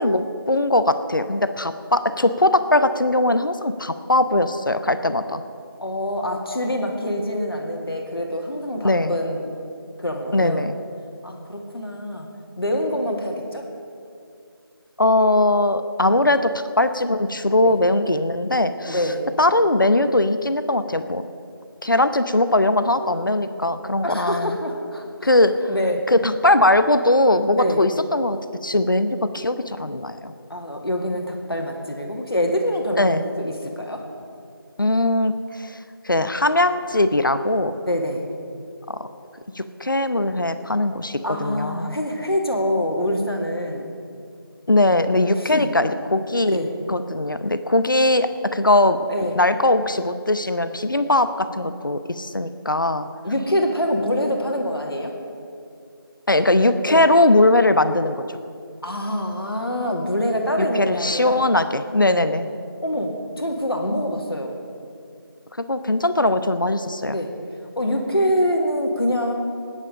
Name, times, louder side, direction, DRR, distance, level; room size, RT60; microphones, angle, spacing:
voice 1, 0.0-5.4 8.8-9.1 10.3-10.8 15.0-19.0 19.4-21.2 21.8-24.6 25.2-25.5 26.1-30.3 33.0-33.2 34.8-35.8 36.0-37.7 38.9-39.0 39.5-42.0 44.7-46.6 46.9-49.0 49.3-53.1 56.3-58.2 60.6-62.5 65.7-67.2, left 2 dB, 60° left, 11 dB, 0.8 m, -20 dB
voice 2, 5.8-9.5 10.0-10.6 11.2-12.3 12.6-13.6 17.6-17.8 18.9-19.3 24.0-25.4 25.7-26.0 27.5-27.8 30.5-34.0 37.8-38.3 41.2-43.9 45.4-45.7 46.5-46.7 49.1-49.4 53.2-55.1 56.9-57.0 58.8-61.4 62.8-64.5 67.1-67.3 67.8-69.3, equal, 75° left, 1 dB, 2.1 m, -25 dB
17.5 x 9.8 x 5.0 m, 2.4 s
figure-of-eight pair, 170°, 13 cm